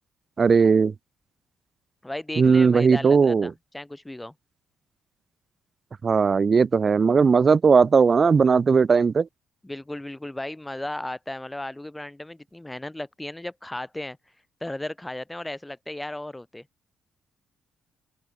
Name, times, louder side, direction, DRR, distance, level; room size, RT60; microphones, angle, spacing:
voice 1, 0.4-0.9 2.4-3.5 6.0-9.3, right 5 dB, 40° right, 0.7 m, -18 dB
voice 2, 2.0-4.3 9.6-14.2 14.6-16.7, left 1 dB, 10° left, 2.8 m, -35 dB
open air
cardioid pair, 90°, 0 cm